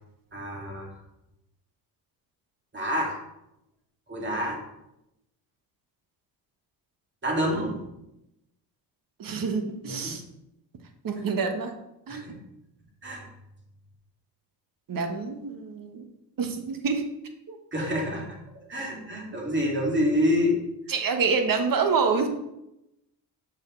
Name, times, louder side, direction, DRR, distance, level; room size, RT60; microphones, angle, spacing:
voice 1, 0.3-0.9 2.7-3.2 4.1-4.6 7.2-7.8 9.9-10.1 12.1-12.4 13.0-13.3 17.7-18.3 18.7-20.6, equal, 25° right, -1 dB, 2.4 m, -27 dB
voice 2, 9.2-10.2 11.0-11.7 12.1-12.3 14.9-16.0 16.4-17.0 17.5-17.6 20.9-22.3, right 5 dB, 50° right, 6 dB, 1.2 m, -27 dB
6.4 x 6.2 x 3.2 m, 0.87 s
supercardioid pair, 75°, 45 cm